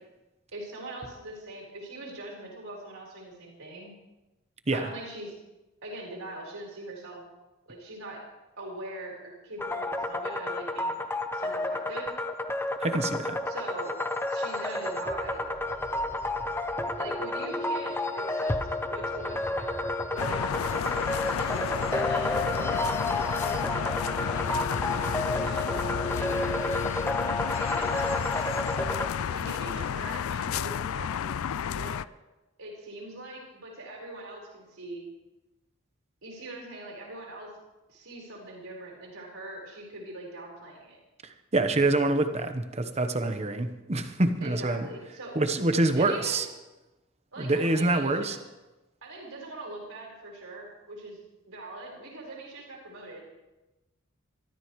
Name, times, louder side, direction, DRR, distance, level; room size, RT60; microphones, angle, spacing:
voice 1, 0.5-3.9 4.7-5.3 5.8-7.2 7.7-8.2 8.6-11.0 11.3-12.1 13.5-13.9 14.3-15.5 17.0-19.7 20.1-26.8 27.4-28.7 29.3-31.3 31.6-32.0 32.6-35.1 36.2-37.5 37.9-41.0 44.4-45.3 46.0-46.4 47.3-48.4 49.0-51.2 51.5-53.3, right 2 dB, 75° right, -2 dB, 4.6 m, -42 dB
sound 1, 9.6-29.1, left 2 dB, 10° left, 0.7 m, -31 dB
voice 2, 12.8-13.4 41.5-44.9 45.3-46.5 47.4-48.4, right 2 dB, 30° right, 8 dB, 1.0 m, -26 dB
sound 2, 20.2-32.0, left 8 dB, 80° left, 0.4 m, -31 dB
22.5 x 13.5 x 3.2 m, 1.0 s
head